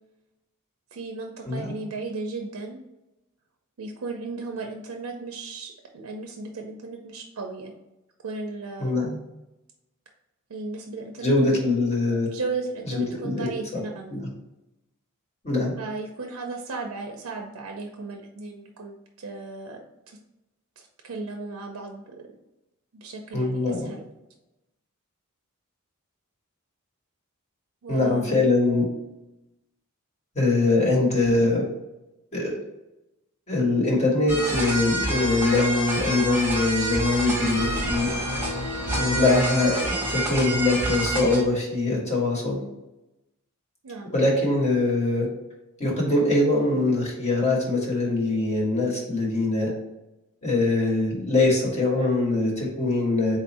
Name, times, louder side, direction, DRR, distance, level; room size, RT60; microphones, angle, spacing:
voice 1, 0.9-2.8 3.8-7.7 8.2-9.2 10.5-11.7 12.3-14.1 15.8-20.2 20.8-22.2 22.9-24.0 27.8-28.4 43.8-44.1, right 3 dB, 85° right, 2 dB, 0.6 m, -35 dB
voice 2, 8.8-9.2 11.2-12.3 12.9-13.5 14.1-14.2 15.4-15.7 23.3-23.9 27.9-28.9 30.3-31.6 32.3-32.5 33.5-38.1 38.9-42.6 44.1-45.3 45.8-49.7 50.4-53.4, left 2 dB, 30° left, -3 dB, 1.3 m, -23 dB
sound 1, 34.3-41.4, right 2 dB, 10° right, 1.0 m, -28 dB
sound 2, 37.5-41.0, left 4 dB, 65° left, 0.4 m, -35 dB
4.0 x 2.6 x 4.1 m, 0.96 s
head